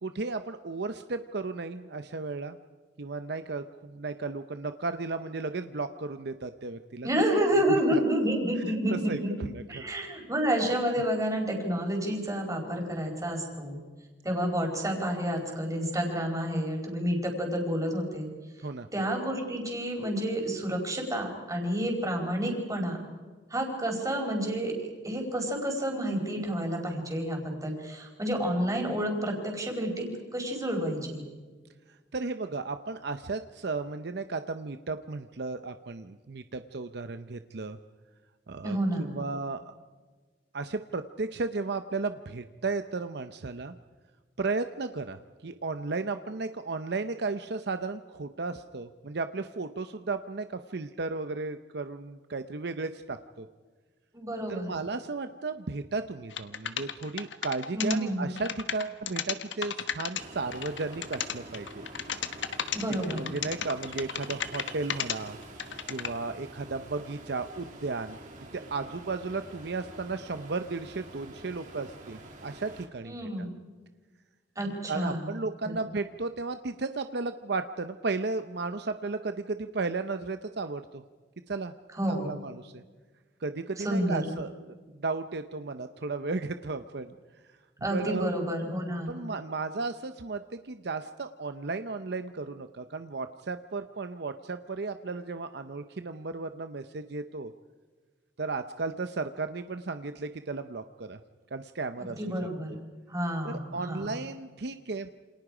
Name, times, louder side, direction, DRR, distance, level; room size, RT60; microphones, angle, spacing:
voice 1, 0.0-2.6 3.0-7.1 7.7-8.0 8.7-9.9 18.6-18.9 32.1-37.8 38.5-39.7 40.5-43.8 44.4-53.5 54.5-61.8 63.1-65.4 65.9-68.2 68.5-73.3 74.9-81.0 81.5-81.7 82.1-82.8 83.4-87.1 87.9-88.3 89.1-97.5 98.4-101.2 101.5-102.3 103.4-105.1, right 3 dB, 65° right, 9 dB, 0.7 m, -34 dB
voice 2, 7.0-9.3 9.7-13.8 14.2-18.3 18.9-23.0 23.5-31.3 38.6-39.1 54.1-54.7 57.7-58.3 62.7-63.3 73.0-73.5 74.6-75.3 75.6-75.7 81.9-82.3 83.8-84.2 87.8-89.1 102.2-102.8 103.1-104.1, equal, 20° right, 1 dB, 4.8 m, -29 dB
sound 1, 56.3-58.0 58.4-60.2 60.5-65.2 65.4-66.1, left 8 dB, 85° left, 1.3 m, -33 dB
Ocean, 60.2-72.8, right 2 dB, 45° right, 3.4 m, -47 dB
28.5 x 27.0 x 5.0 m, 1.4 s
head